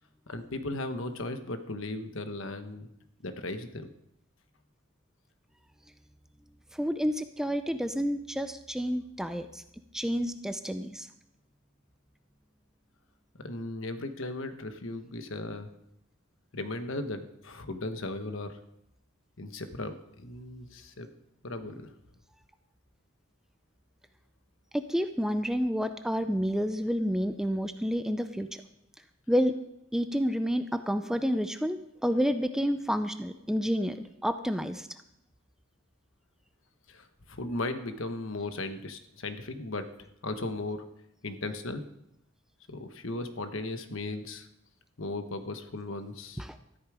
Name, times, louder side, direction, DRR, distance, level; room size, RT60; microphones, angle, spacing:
voice 1, 0.3-2.9 3.2-3.9 13.4-15.7 16.5-18.6 19.4-21.1 21.4-21.9 36.9-39.9 40.2-40.8 41.2-41.8 42.7-44.5 45.0-46.4, left 2 dB, 65° left, 8 dB, 1.2 m, -36 dB
voice 2, 6.7-9.6 9.9-11.1 24.7-28.5 29.3-29.5 29.9-34.9 46.4-46.5, equal, ahead, 8 dB, 0.5 m, -29 dB
13.5 x 12.0 x 4.9 m, 0.82 s
head